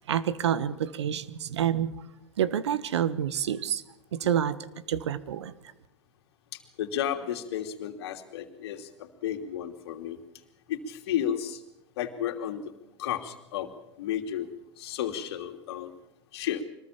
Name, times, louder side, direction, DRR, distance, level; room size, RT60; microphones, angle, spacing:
voice 1, 0.1-1.9 2.4-3.8 4.1-4.6 4.9-5.5, right 9 dB, 70° right, 15 dB, 1.5 m, -28 dB
voice 2, 6.5-10.2 10.7-11.6 12.0-12.7 13.0-13.7 14.0-14.5 14.8-15.9 16.3-16.6, left 10 dB, 60° left, 6 dB, 2.9 m, -32 dB
25.0 x 19.5 x 7.4 m, 0.89 s
figure-of-eight pair, 90°, 15 cm